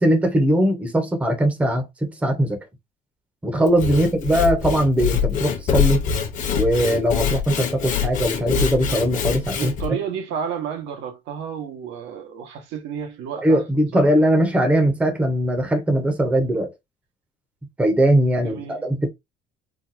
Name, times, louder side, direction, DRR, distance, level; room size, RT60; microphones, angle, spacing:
voice 1, 0.0-2.6 3.4-6.0 6.5-9.7 13.4-16.7 17.8-19.1, right 1 dB, 5° right, 0.6 m, -20 dB
Sawing / Wood, 3.7-9.9, left 7 dB, 45° left, 0.8 m, -24 dB
voice 2, 9.6-14.0 18.4-18.8, right 7 dB, 85° right, 1.0 m, -31 dB
3.9 x 2.3 x 2.6 m
cardioid pair, 175°, 19 cm